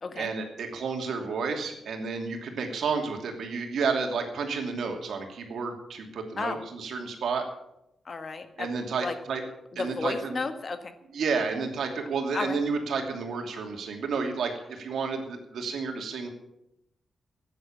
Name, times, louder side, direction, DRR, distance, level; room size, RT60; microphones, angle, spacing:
voice 1, 0.2-7.4 8.6-9.4 9.8-10.4 11.1-16.3, right 5 dB, 80° right, 3 dB, 2.7 m, -31 dB
voice 2, 8.0-8.7 9.0-9.1 9.7-10.9 12.3-12.6, left 4 dB, 40° left, 9 dB, 1.4 m, -32 dB
14.0 x 9.6 x 7.3 m, 0.84 s
wide cardioid pair, 120°, 0 cm